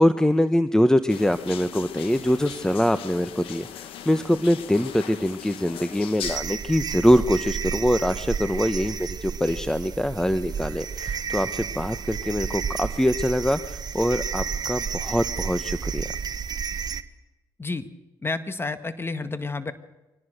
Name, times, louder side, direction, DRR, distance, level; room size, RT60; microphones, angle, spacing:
voice 1, 0.0-16.1, equal, 5° left, 11 dB, 1.1 m, -23 dB
sound 1, 1.1-6.4, left 10 dB, 75° left, 1.6 m, -39 dB
sound 2, 6.2-17.0, right 6 dB, 45° right, 1.3 m, -31 dB
voice 2, 18.2-19.7, left 3 dB, 25° left, 11 dB, 1.8 m, -30 dB
24.5 x 18.0 x 6.7 m, 1.0 s
supercardioid pair, 60°, 9 cm